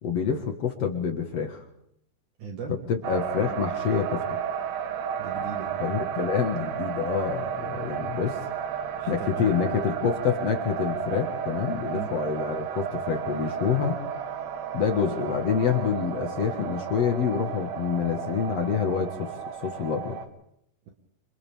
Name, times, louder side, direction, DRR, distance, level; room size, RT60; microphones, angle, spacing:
voice 1, 0.0-1.6 2.7-4.4 5.8-8.4 9.1-14.0 14.7-19.3 19.6-20.2, left 7 dB, 55° left, 4 dB, 2.3 m, -27 dB
voice 2, 2.4-2.9 3.4-3.5 5.2-5.8 9.0-9.6 11.9-12.1, right 5 dB, 60° right, 2 dB, 3.0 m, -37 dB
sound 1, 3.0-20.3, right 8 dB, 80° right, 3.1 m, -33 dB
27.0 x 27.0 x 3.6 m, 0.75 s
omnidirectional pair, 4.2 m